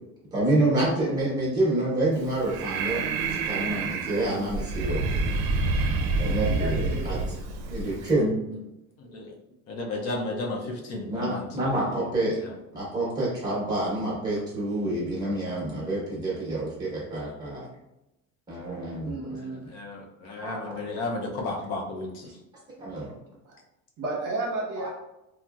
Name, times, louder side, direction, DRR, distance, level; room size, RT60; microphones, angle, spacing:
voice 1, 0.3-3.0 3.4-5.0 6.2-7.2 7.7-8.3 11.1-12.3 12.7-17.6 18.5-19.1 20.4-20.9 22.8-23.1 24.8-24.9, right 1 dB, 10° right, -5 dB, 1.0 m, -27 dB
Breathing, 2.2-8.1, right 3 dB, 75° right, 0.5 m, -28 dB
voice 2, 6.4-7.4 7.7-7.9 19.0-19.7 23.4-23.6 24.0-24.9, right 2 dB, 45° right, -3 dB, 0.9 m, -33 dB
voice 3, 9.0-9.3 9.7-12.1 12.4-12.5 19.3-22.4, left 2 dB, 45° left, 0 dB, 0.6 m, -34 dB
3.9 x 2.0 x 2.3 m, 0.89 s
cardioid pair, 175°, 35 cm